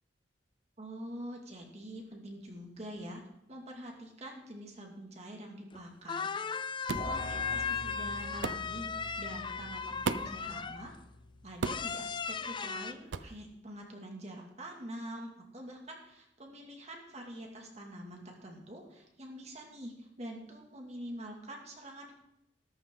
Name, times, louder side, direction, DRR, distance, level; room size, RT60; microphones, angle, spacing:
voice 1, 0.8-3.2 3.5-6.3 6.9-10.9 11.4-22.1, right 1 dB, 35° right, 1 dB, 2.2 m, -45 dB
sound 1, 5.7-5.8 6.1-10.9 11.6-12.9, left 6 dB, 25° left, 0.4 m, -37 dB
sound 2, 6.9-12.5, left 1 dB, 45° left, 3.4 m, -46 dB
sound 3, 6.9-7.1 8.4-8.7 10.0-10.4 11.6-11.9 13.1-13.3, right 4 dB, 80° right, 0.6 m, -34 dB
13.5 x 13.0 x 3.8 m, 0.81 s
head